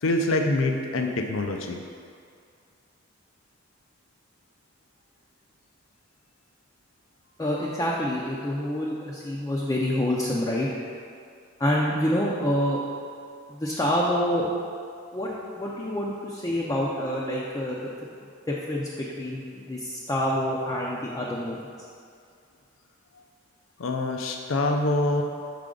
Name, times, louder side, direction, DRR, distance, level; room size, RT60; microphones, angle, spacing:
voice 1, 0.0-1.8 23.8-25.2, left 2 dB, 85° left, 4 dB, 0.5 m, -25 dB
voice 2, 7.4-10.7 11.6-12.8 13.5-14.5 15.1-17.9 18.5-21.6, left 1 dB, 15° left, -4 dB, 0.5 m, -27 dB
6.6 x 5.0 x 3.7 m, 2.3 s
head